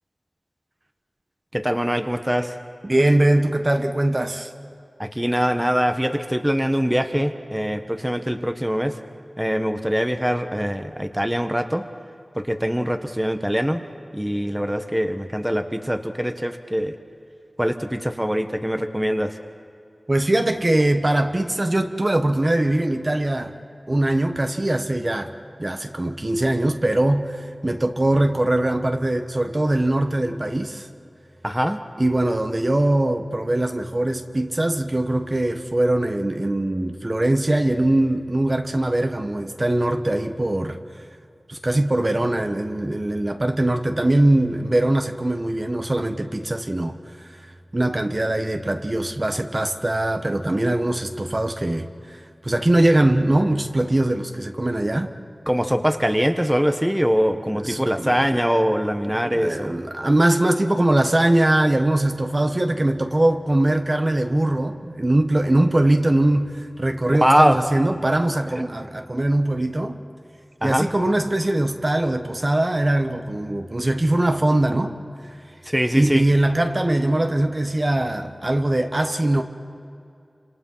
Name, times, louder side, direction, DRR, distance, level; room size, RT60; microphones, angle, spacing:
voice 1, 1.5-2.5 5.0-8.9 9.4-11.8 12.3-13.8 14.1-16.9 17.6-19.3 31.4-31.8 55.5-59.8 67.1-67.6 68.6-68.7 70.6-70.9 75.7-76.2, equal, 5° right, 1.3 m, -22 dB
voice 2, 2.8-4.5 20.1-23.5 23.9-25.3 25.6-30.9 32.0-40.8 41.5-47.0 47.3-47.4 47.7-52.2 52.4-55.1 57.5-58.3 59.1-70.0 70.6-75.0 75.9-79.4, right 1 dB, 40° right, 1.3 m, -21 dB
30.0 x 27.0 x 5.7 m
wide cardioid pair, 70°, 0 cm